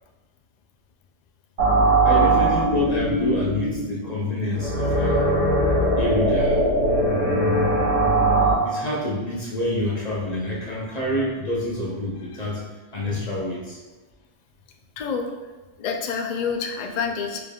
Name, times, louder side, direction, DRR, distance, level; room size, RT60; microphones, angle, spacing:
sound 1, 1.6-8.5, right 2 dB, 55° right, 1.9 m, -20 dB
voice 1, 2.0-5.3 6.0-6.6 8.6-12.6 12.9-13.8, left 1 dB, 40° left, -5 dB, 0.7 m, -27 dB
voice 2, 15.0-15.3 15.8-17.4, left 6 dB, 80° left, 3 dB, 0.3 m, -27 dB
5.0 x 3.3 x 2.3 m, 1.2 s
omnidirectional pair, 1.3 m